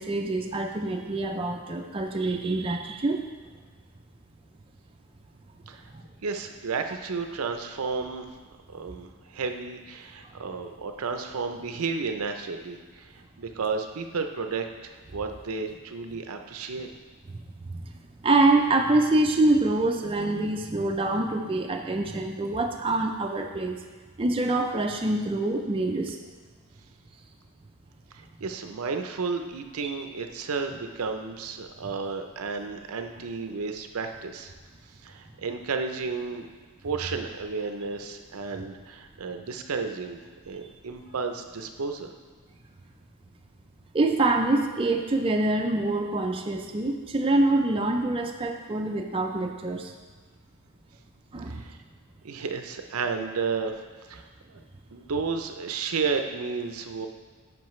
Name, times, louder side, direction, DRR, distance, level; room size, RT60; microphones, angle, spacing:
voice 1, 0.0-3.3 5.9-6.0 17.3-17.4 17.8-17.9 18.2-23.8 24.2-26.2 29.8-29.9 43.9-49.9 51.3-51.6, right 2 dB, 25° right, 2 dB, 0.5 m, -25 dB
voice 2, 6.2-8.3 8.7-16.9 28.1-34.5 35.0-36.5 36.8-40.2 40.5-42.1 51.5-51.8 52.2-53.7 54.1-54.2 54.5-54.6 54.9-57.1, right 4 dB, 75° right, 6 dB, 0.6 m, -32 dB
10.5 x 5.2 x 3.1 m, 1.4 s
head